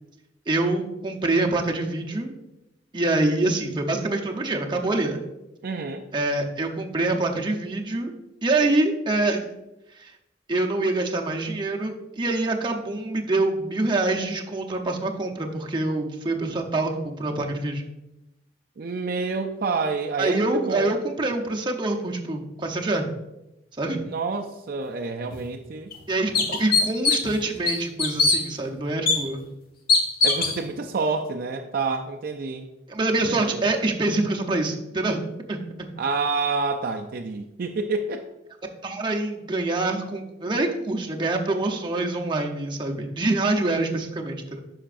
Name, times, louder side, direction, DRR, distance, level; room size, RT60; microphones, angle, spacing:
voice 1, 0.5-2.4 2.9-5.2 6.1-8.1 8.4-9.5 10.0-10.1 10.5-17.8 20.2-23.1 23.8-24.0 26.1-29.4 32.9-35.9 38.8-44.6, right 2 dB, 25° right, 1 dB, 0.7 m, -25 dB
voice 2, 5.6-6.0 18.8-21.0 24.0-25.9 30.2-32.7 33.3-33.6 36.0-38.2, right 4 dB, 55° right, 3 dB, 0.4 m, -28 dB
sound 1, 25.3-25.4 25.9-26.0 26.3-27.3 27.7-28.4 29.1-29.2 29.9-30.6, left 4 dB, 55° left, 1.3 m, -20 dB
10.0 x 5.7 x 2.5 m, 0.93 s
head